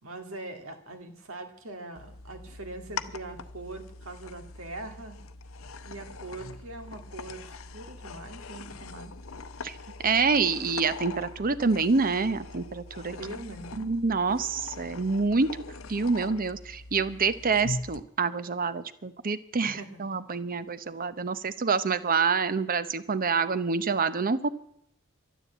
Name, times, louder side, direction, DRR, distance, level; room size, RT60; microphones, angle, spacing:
voice 1, 0.0-5.2 5.9-7.5 7.7-9.1 13.1-13.8 19.6-20.0, right 2 dB, 70° right, 6 dB, 2.2 m, -42 dB
sound 1, 2.0-18.0, left 3 dB, 75° left, 0.8 m, -42 dB
voice 2, 10.0-13.1 13.8-15.5 15.9-24.5, right 4 dB, 45° right, 14 dB, 0.8 m, -27 dB
12.5 x 11.0 x 8.2 m, 0.71 s
head